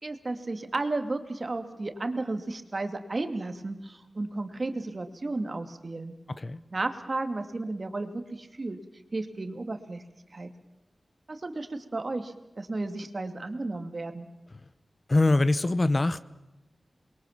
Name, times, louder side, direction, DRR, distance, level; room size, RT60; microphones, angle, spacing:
voice 1, 0.0-6.1 6.7-8.8 9.1-10.0 10.3-10.5 11.3-14.3, right 2 dB, 45° right, 2.4 m, -33 dB
voice 2, 15.1-16.2, left 2 dB, 35° left, 0.9 m, -23 dB
28.5 x 22.5 x 7.3 m
wide cardioid pair, 75°, 0 cm